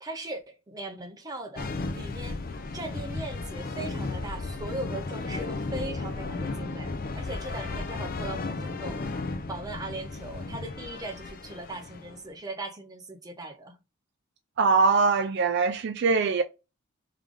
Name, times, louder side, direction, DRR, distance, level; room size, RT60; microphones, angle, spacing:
voice 1, 0.0-2.4 2.7-9.0 9.5-13.8, right 2 dB, 15° right, 0.7 m, -39 dB
sound 1, 1.6-12.3, left 3 dB, 40° left, 0.5 m, -34 dB
voice 2, 14.6-16.4, right 4 dB, 50° right, 0.3 m, -22 dB
3.7 x 3.3 x 3.6 m
head